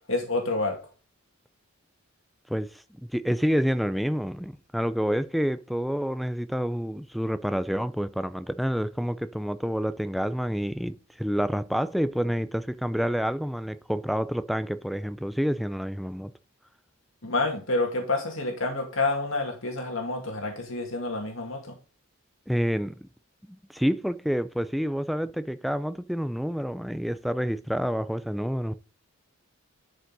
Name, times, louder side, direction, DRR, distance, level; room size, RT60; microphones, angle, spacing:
voice 1, 0.1-0.8 17.2-21.7, left 2 dB, 65° left, 2.2 m, -28 dB
voice 2, 2.5-16.3 22.5-23.1 23.5-28.7, equal, ahead, 0.4 m, -28 dB
11.5 x 5.4 x 4.0 m
head